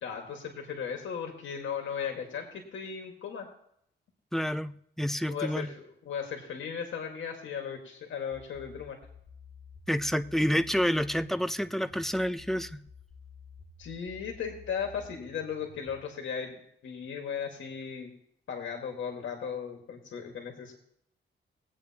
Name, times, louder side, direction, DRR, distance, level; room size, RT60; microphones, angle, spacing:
voice 1, 0.0-3.5 5.3-9.0 13.8-16.6 16.8-18.1 18.5-20.7, left 7 dB, 85° left, 2 dB, 1.7 m, -36 dB
voice 2, 4.3-5.7 9.9-12.8, equal, ahead, 11 dB, 0.4 m, -29 dB
sound 1, 8.3-16.0, left 5 dB, 35° left, 1.7 m, -52 dB
21.0 x 8.4 x 2.8 m, 0.73 s
cardioid pair, 115°, 19 cm